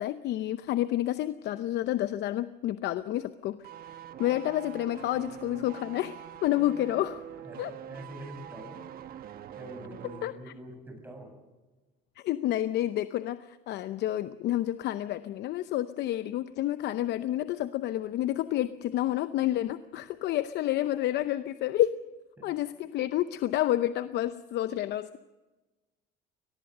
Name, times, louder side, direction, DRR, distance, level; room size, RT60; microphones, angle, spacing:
voice 1, 0.0-3.6 4.2-7.2 7.6-7.7 10.2-10.3 12.2-21.9 22.4-25.2, left 13 dB, 60° left, 12 dB, 0.8 m, -29 dB
sound 1, 3.6-10.3 10.6-10.7, right 10 dB, 50° right, 1.2 m, -44 dB
voice 2, 7.4-8.9 9.5-11.3 22.4-22.5, right 1 dB, 10° right, 3 dB, 7.5 m, -45 dB
22.5 x 19.0 x 6.7 m, 1.2 s
cardioid pair, 110°, 20 cm